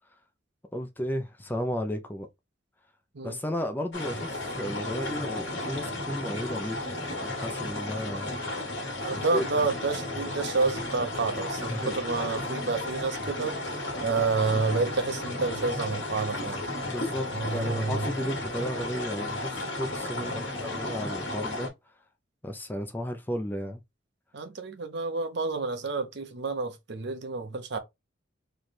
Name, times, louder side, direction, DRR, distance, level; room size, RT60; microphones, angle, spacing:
voice 1, 0.7-2.3 3.2-8.3 9.1-9.5 11.7-12.0 16.9-21.7 22.4-23.8, equal, 10° left, 0.4 m, -34 dB
sound 1, 3.9-21.7, left 2 dB, 65° left, 1.3 m, -34 dB
voice 2, 9.0-13.6 14.0-16.6 17.3-18.1 20.2-20.4 24.3-27.8, right 4 dB, 60° right, 0.7 m, -29 dB
3.2 x 2.2 x 4.1 m
head